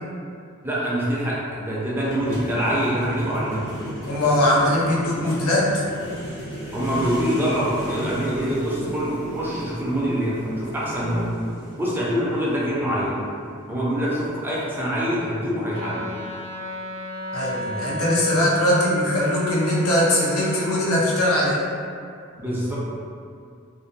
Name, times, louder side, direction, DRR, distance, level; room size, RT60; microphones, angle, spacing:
voice 1, 0.6-3.7 6.7-11.3 11.8-13.2 13.7-16.0 22.4-22.8, equal, 10° right, -6 dB, 0.4 m, -25 dB
sound 1, 2.0-16.4, equal, 55° left, 0.8 m, -36 dB
voice 2, 4.1-5.8 17.3-21.6, left 1 dB, 90° left, -5 dB, 0.6 m, -21 dB
Wind instrument woodwind instrument, 15.7-20.9, equal, 85° right, 0.4 m, -34 dB
2.4 x 2.2 x 2.5 m, 2.4 s
head